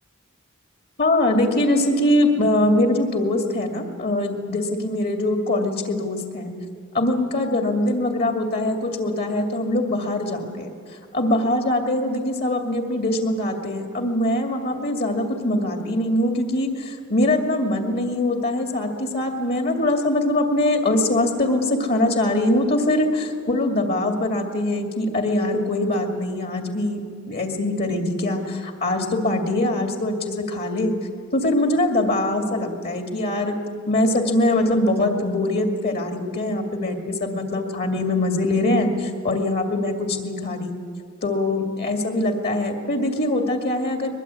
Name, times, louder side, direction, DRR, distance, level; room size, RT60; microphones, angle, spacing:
voice 1, 1.0-6.5 6.9-10.7 11.1-27.0 27.3-30.9 31.3-33.6 33.9-40.7 41.2-44.1, left 1 dB, 50° left, 3 dB, 2.4 m, -22 dB
23.0 x 21.5 x 8.4 m, 2.2 s
head